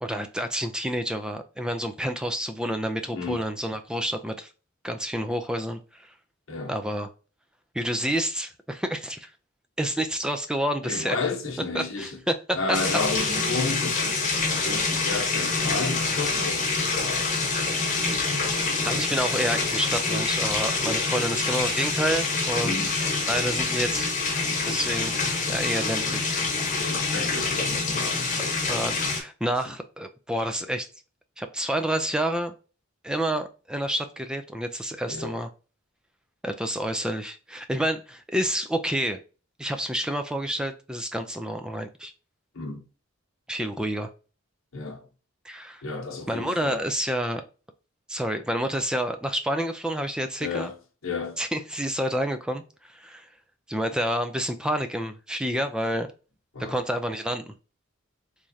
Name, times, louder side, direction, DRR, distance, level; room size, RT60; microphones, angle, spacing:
voice 1, 0.0-4.5 4.8-6.1 6.7-7.1 7.7-9.3 9.8-11.2 11.7-12.4 12.7-12.8 13.2-13.3 18.9-22.9 23.3-24.1 24.6-25.1 25.5-26.4 28.6-30.9 31.4-32.5 33.0-35.5 36.4-39.2 39.6-42.1 43.5-44.1 45.4-45.8 46.3-47.4 48.1-50.7 51.4-53.3 53.7-56.1 56.6-57.5, equal, 5° right, 0.3 m, -29 dB
voice 2, 3.1-3.4 6.5-6.7 10.8-12.2 12.5-17.9 21.1-21.3 22.6-22.9 26.9-28.6 29.6-29.7 35.1-35.4 42.5-42.8 44.7-45.1 45.8-46.8 50.4-50.7 51.0-51.4 56.5-56.8, left 3 dB, 80° left, 0.9 m, -32 dB
sound 1, 12.7-29.2, left 3 dB, 35° left, 1.0 m, -26 dB
3.5 x 3.1 x 2.6 m
head